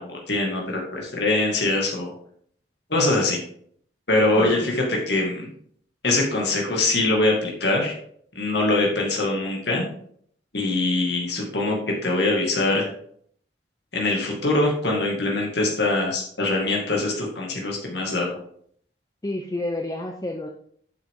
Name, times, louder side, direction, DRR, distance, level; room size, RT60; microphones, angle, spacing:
voice 1, 0.0-2.1 2.9-3.4 4.1-5.5 6.0-7.9 8.3-9.9 10.5-11.8 12.0-12.8 13.9-18.4, left 2 dB, 65° left, -1 dB, 2.2 m, -23 dB
voice 2, 4.4-4.7 19.2-20.5, left 1 dB, 20° left, 3 dB, 0.6 m, -30 dB
8.8 x 6.7 x 3.7 m, 0.62 s
head